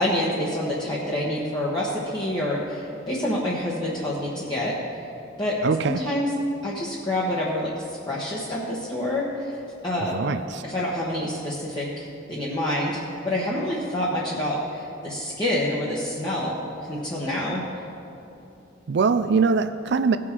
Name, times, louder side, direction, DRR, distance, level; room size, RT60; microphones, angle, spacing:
voice 1, 0.0-4.7 5.4-5.6 5.8-6.3 6.6-9.6 9.8-10.2 10.6-16.6 16.9-17.6, left 1 dB, 25° left, -7 dB, 1.2 m, -27 dB
voice 2, 5.6-6.0 10.1-10.6 18.9-20.2, right 5 dB, 60° right, 11 dB, 0.4 m, -22 dB
17.0 x 6.2 x 4.5 m, 2.7 s
head